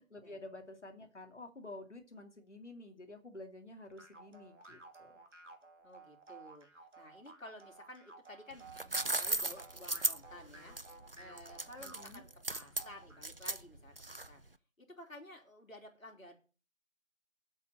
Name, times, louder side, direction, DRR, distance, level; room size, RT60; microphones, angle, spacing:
voice 1, 0.0-5.1 11.8-12.2, left 2 dB, 60° left, 5 dB, 2.5 m, -50 dB
sound 1, 4.0-13.3, right 3 dB, 65° right, 2.8 m, -55 dB
voice 2, 5.8-10.8 11.1-14.4 14.8-16.4, left 1 dB, 85° left, 2 dB, 3.3 m, -53 dB
sound 2, 8.5-14.5, right 2 dB, 45° right, 0.5 m, -37 dB
8.1 x 7.1 x 7.9 m, 0.37 s
figure-of-eight pair, 170°, 40 cm